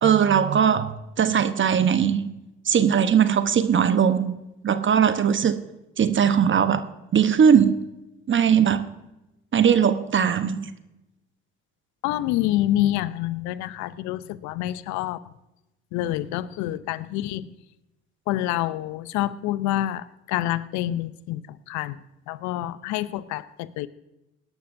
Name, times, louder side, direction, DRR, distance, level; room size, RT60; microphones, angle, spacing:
voice 1, 0.0-2.3 2.7-4.4 4.6-5.6 6.0-6.9 7.1-7.8 8.3-8.9 9.5-10.7, right 8 dB, 40° right, 11 dB, 1.0 m, -20 dB
voice 2, 12.0-15.2 15.9-17.5 18.3-21.4 21.7-22.0 22.3-23.9, left 14 dB, 75° left, 16 dB, 0.7 m, -27 dB
19.0 x 11.5 x 2.6 m, 0.97 s
hypercardioid pair, 55°, 29 cm